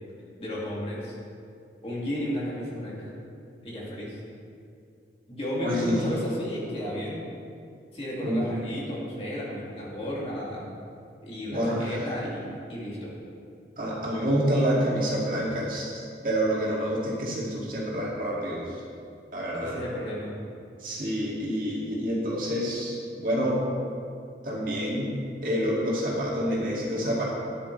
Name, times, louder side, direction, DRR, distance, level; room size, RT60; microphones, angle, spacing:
voice 1, 0.4-1.1 1.8-3.1 3.6-4.2 5.3-7.2 7.9-10.7 11.2-13.1 19.5-20.3, left 1 dB, 35° left, -6 dB, 2.5 m, -33 dB
voice 2, 5.6-6.0 8.2-8.5 11.5-12.0 13.8-15.9 16.2-18.6 19.3-19.7 20.8-23.6 24.4-25.1 25.4-27.2, equal, 50° right, -5 dB, 2.3 m, -27 dB
12.5 x 10.5 x 3.3 m, 2.4 s
head